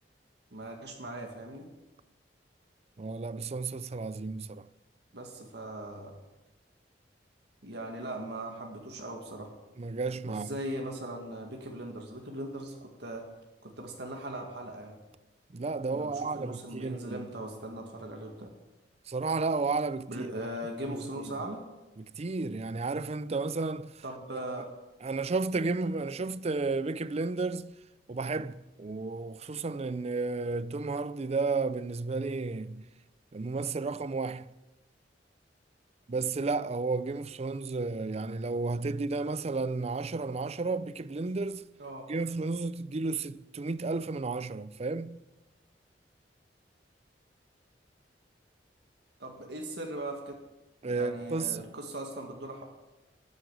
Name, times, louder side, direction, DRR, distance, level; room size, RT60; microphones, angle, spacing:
voice 1, 0.5-1.7 5.1-6.1 7.6-9.5 10.3-13.3 13.6-15.0 15.9-18.5 20.1-21.6 24.0-24.7 41.8-42.1 49.2-50.3 50.9-52.6, right 1 dB, 65° right, 2.0 m, -39 dB
voice 2, 3.0-4.7 9.8-10.6 15.5-17.3 19.1-20.3 20.9-21.0 21.3-21.4 22.0-24.0 24.3-24.4 25.0-27.7 28.1-32.8 33.3-34.5 36.1-41.6 42.1-45.2 50.8-51.7, right 3 dB, 35° right, 0.5 m, -32 dB
12.5 x 10.0 x 8.3 m
head